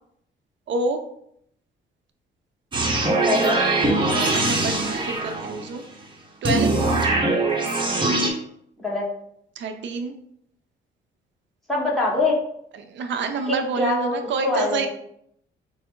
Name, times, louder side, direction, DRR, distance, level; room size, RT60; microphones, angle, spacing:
voice 1, 0.7-1.0 4.0-5.8 6.4-6.9 9.5-10.2 12.7-14.9, right 4 dB, 65° right, 6 dB, 0.6 m, -28 dB
sound 1, 2.7-5.7 6.4-8.3, right 2 dB, 25° right, 0.9 m, -22 dB
voice 2, 3.3-3.6 8.8-9.1 11.7-12.4 13.8-14.1 14.4-14.9, left 3 dB, ahead, -5 dB, 1.3 m, -23 dB
4.3 x 2.0 x 3.8 m, 0.71 s
cardioid pair, 90°, 20 cm